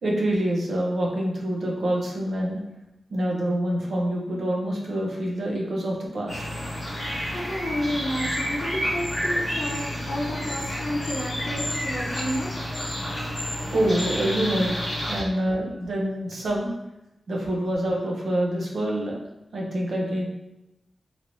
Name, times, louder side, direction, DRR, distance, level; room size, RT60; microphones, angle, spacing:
voice 1, 0.0-2.6 3.1-6.4 13.7-16.7 17.3-19.2 19.5-20.3, right 1 dB, 75° right, -2 dB, 0.7 m, -26 dB
sound 1, 6.3-15.2, equal, 45° left, 1.3 m, -30 dB
voice 2, 7.3-12.5, equal, 65° left, -5 dB, 0.7 m, -31 dB
3.1 x 2.9 x 2.6 m, 0.93 s
wide cardioid pair, 145°, 0 cm